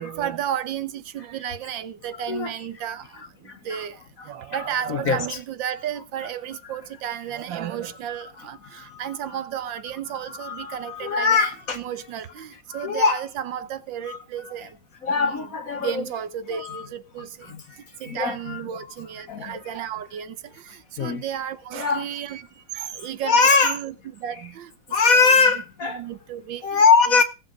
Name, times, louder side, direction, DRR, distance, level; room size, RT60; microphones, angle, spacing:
voice 1, 0.0-4.0 4.2-14.7 15.1-15.5 15.8-17.5 18.0-22.4 22.7-24.7 25.1-25.3 25.8-26.8 27.1-27.2, right 9 dB, 70° right, 1.6 m, -33 dB
voice 2, 3.4-3.8 4.2-4.3 4.6-5.2 8.6-9.2 10.3-11.8 12.7-13.2 14.1-14.2 15.0-16.0 16.5-16.8 17.4-18.6 19.3-19.7 21.0-21.2 21.7-22.0 23.2-23.8 24.9-26.0 26.6-27.2, left 5 dB, 50° left, 1.2 m, -22 dB
17.5 x 7.1 x 5.1 m
omnidirectional pair, 2.2 m